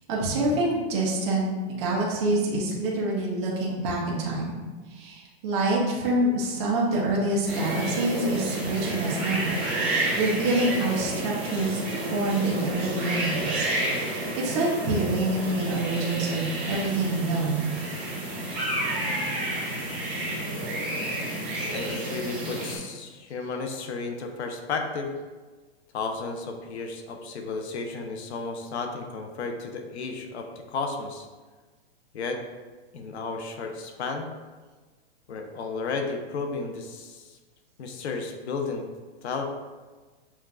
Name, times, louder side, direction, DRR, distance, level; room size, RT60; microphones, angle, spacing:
voice 1, 0.1-1.5 1.8-4.6 4.9-9.6 9.9-11.8 12.1-17.7, right 2 dB, 25° right, -4 dB, 0.7 m, -26 dB
sound 1, 7.5-22.8, right 1 dB, 5° right, 1.0 m, -30 dB
voice 2, 21.7-25.1 25.9-31.3 32.1-32.4 32.9-34.3 35.3-37.4 37.8-38.8 39.2-39.4, left 4 dB, 90° left, 4 dB, 0.8 m, -33 dB
7.0 x 2.4 x 2.4 m, 1.3 s
supercardioid pair, 175°, 32 cm